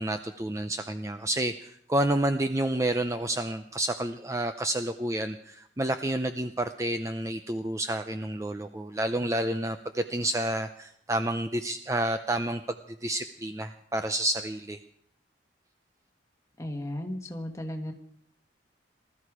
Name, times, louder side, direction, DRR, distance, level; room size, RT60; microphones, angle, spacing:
voice 1, 0.0-12.6 13.0-14.8, right 1 dB, 15° right, 8 dB, 0.5 m, -29 dB
voice 2, 16.6-17.9, left 1 dB, 15° left, 3 dB, 1.6 m, -35 dB
20.0 x 13.5 x 4.9 m, 0.69 s
head